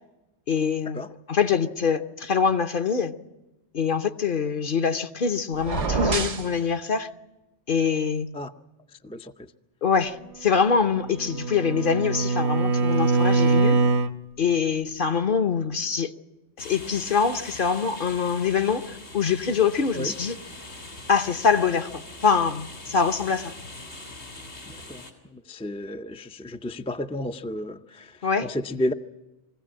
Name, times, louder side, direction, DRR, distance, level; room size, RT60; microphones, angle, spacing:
voice 1, 0.5-1.0 1.3-3.1 3.7-7.1 7.7-8.3 9.8-13.8 14.4-16.1 16.6-20.4 21.1-23.5 28.2-28.5, left 6 dB, 50° left, 1.0 m, -24 dB
sound 1, 5.6-6.5, right 4 dB, 90° right, 1.8 m, -26 dB
voice 2, 9.0-9.5 19.9-20.1 24.7-28.9, left 1 dB, 10° left, 0.4 m, -32 dB
Bowed string instrument, 10.8-14.2, right 4 dB, 70° right, 1.2 m, -23 dB
sound 2, 16.6-25.1, left 2 dB, 70° left, 3.7 m, -42 dB
23.0 x 16.0 x 8.7 m
omnidirectional pair, 1.2 m